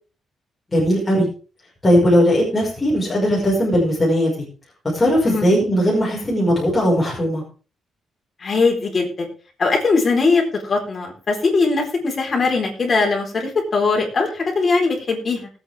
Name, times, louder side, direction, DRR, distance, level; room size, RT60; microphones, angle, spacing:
voice 1, 0.7-1.3 1.8-4.3 4.9-7.4, equal, 15° left, -5 dB, 5.5 m, -18 dB
voice 2, 8.4-9.3 9.6-15.5, left 4 dB, 35° left, 1 dB, 4.3 m, -20 dB
19.5 x 8.7 x 3.6 m, 0.38 s
cardioid pair, 155°, 0 cm